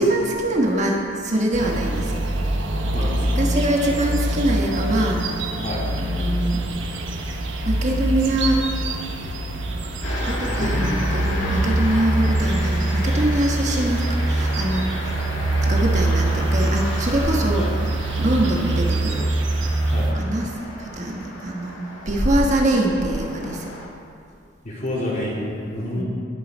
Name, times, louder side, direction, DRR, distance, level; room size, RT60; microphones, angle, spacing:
voice 1, 0.0-2.2 3.4-5.2 6.0-6.6 7.6-8.7 10.2-17.7 18.2-19.3 19.6-19.7 20.1-23.7 25.9-26.0, right 1 dB, 40° right, 0 dB, 1.3 m, -23 dB
sound 1, 1.5-20.1, right 2 dB, 75° right, 1.1 m, -24 dB
voice 2, 2.9-3.3 5.6-5.8 10.5-10.9 17.6-17.7 19.9-20.1 24.6-26.0, left 1 dB, 40° left, -6 dB, 3.2 m, -28 dB
sound 2, 10.0-23.9, left 1 dB, 80° left, 1.9 m, -33 dB
18.5 x 6.9 x 4.5 m, 2.3 s
head